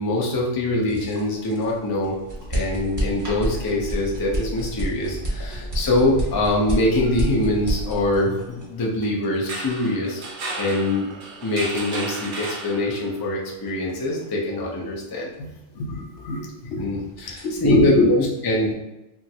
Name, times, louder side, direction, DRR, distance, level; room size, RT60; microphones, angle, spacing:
voice 1, 0.0-2.1 2.5-10.2 10.6-11.1 11.4-15.3 16.8-18.7, left 1 dB, 40° left, -2 dB, 0.3 m, -23 dB
sound 1, 0.8-16.6 16.9-17.6, right 1 dB, 20° right, 0.8 m, -31 dB
sound 2, 9.3-13.2, right 2 dB, 55° right, 0.6 m, -33 dB
voice 2, 15.7-16.9 17.4-18.1, left 3 dB, 90° left, 1 dB, 0.9 m, -23 dB
3.0 x 2.5 x 2.7 m, 0.95 s
omnidirectional pair, 1.2 m